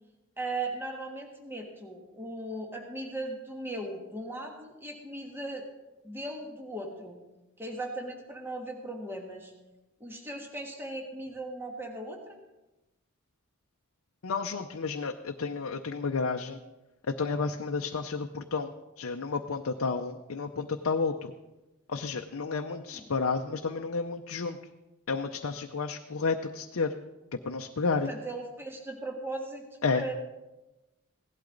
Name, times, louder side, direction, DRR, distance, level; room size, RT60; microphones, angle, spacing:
voice 1, 0.4-5.6 6.0-7.2 7.6-9.5 10.0-12.4 22.6-23.1 27.9-29.6 29.9-30.1, right 2 dB, 10° right, 1 dB, 1.5 m, -38 dB
voice 2, 14.2-16.6 17.1-18.7 19.0-21.3 21.9-24.6 25.1-26.9 27.3-28.1 29.8-30.0, left 4 dB, 70° left, 4 dB, 0.6 m, -31 dB
17.0 x 12.0 x 3.9 m, 1.0 s
head